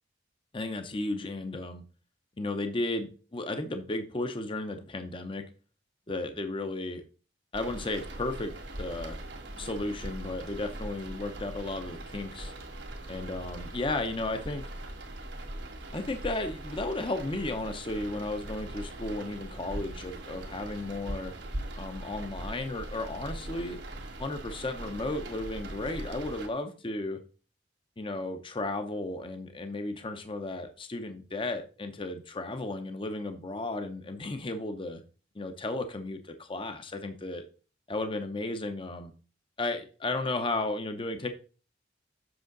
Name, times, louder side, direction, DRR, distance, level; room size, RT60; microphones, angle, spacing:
voice 1, 0.5-1.8 2.4-5.5 6.1-7.0 7.5-8.5 8.8-9.2 9.6-12.5 13.1-14.7 15.9-21.3 21.8-23.8 24.2-27.2 28.0-35.0 35.3-37.4 37.9-39.1 39.6-41.3, left 2 dB, 30° left, 0.7 m, -34 dB
sound 1, 7.5-26.5, right 1 dB, 70° right, 2.0 m, -41 dB
7.8 x 6.2 x 3.9 m
head